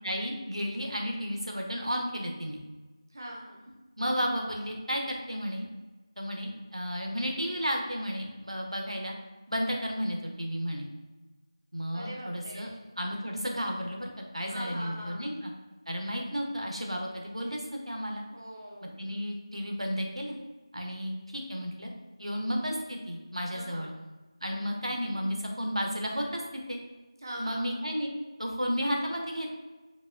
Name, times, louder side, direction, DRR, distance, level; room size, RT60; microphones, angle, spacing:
voice 1, 0.0-2.6 4.0-5.7 6.2-9.2 9.5-10.9 11.7-12.7 13.0-15.5 15.9-18.2 18.8-20.4 20.7-21.9 22.2-23.9 24.4-26.8 27.4-28.1 28.4-29.5, equal, 80° right, 1 dB, 1.0 m, -33 dB
voice 2, 3.1-3.6 11.9-12.8 14.5-15.3 18.3-18.9 23.5-23.9 27.2-27.8, equal, 40° right, -3 dB, 0.7 m, -41 dB
4.8 x 4.7 x 2.2 m, 1.2 s
figure-of-eight pair, 170°, 3 cm